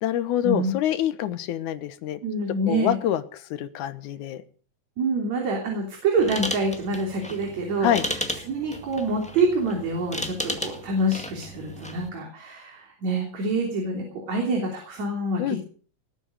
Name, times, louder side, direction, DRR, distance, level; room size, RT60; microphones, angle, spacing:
voice 1, 0.0-2.2 2.7-3.2 3.5-4.4 7.8-8.0 15.4-15.6, left 11 dB, 75° left, 12 dB, 2.5 m, -26 dB
voice 2, 2.2-3.0 5.0-8.2 8.5-15.6, right 2 dB, 60° right, 1 dB, 4.4 m, -26 dB
sound 1, 6.2-12.1, equal, 5° left, 1.1 m, -34 dB
19.5 x 8.8 x 6.5 m, 0.43 s
omnidirectional pair, 3.6 m